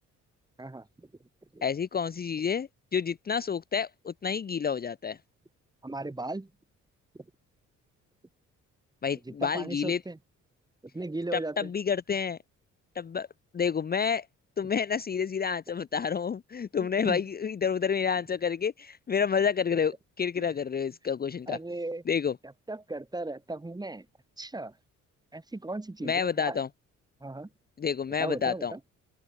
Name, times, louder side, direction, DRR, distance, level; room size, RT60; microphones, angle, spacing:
voice 1, 0.6-1.1 1.5-1.6 5.8-6.5 9.3-10.2 10.9-11.7 16.8-17.2 20.4-20.5 21.5-22.0 22.7-24.1 24.4-24.7 25.3-26.6 27.2-27.5 28.2-28.8, right 2 dB, 15° right, 2.2 m, -37 dB
voice 2, 1.6-5.2 9.0-10.0 11.3-12.4 12.9-13.3 13.5-14.3 14.6-21.6 22.1-22.4 26.0-26.7 27.8-28.7, left 6 dB, 30° left, 0.7 m, -29 dB
open air
cardioid pair, 90°, 30 cm